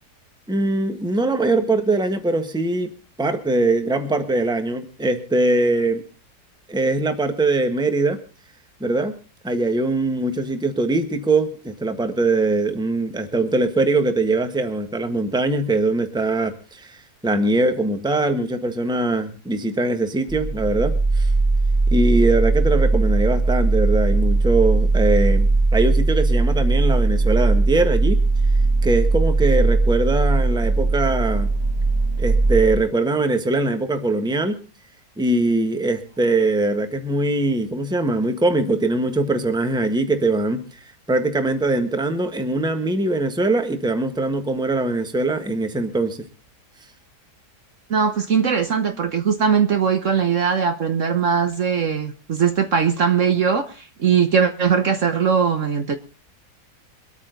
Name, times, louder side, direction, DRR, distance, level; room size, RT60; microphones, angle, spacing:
voice 1, 0.5-2.9 3.2-6.0 6.7-8.2 8.8-9.1 9.4-21.3 21.9-28.2 28.8-31.5 32.2-34.6 35.2-40.6 41.1-46.2, right 2 dB, 5° right, 1.2 m, -21 dB
sound 1, 20.3-32.8, right 3 dB, 25° right, 1.2 m, -19 dB
voice 2, 47.9-53.7 54.0-55.9, right 6 dB, 55° right, 1.3 m, -20 dB
23.5 x 8.9 x 3.9 m
omnidirectional pair, 1.7 m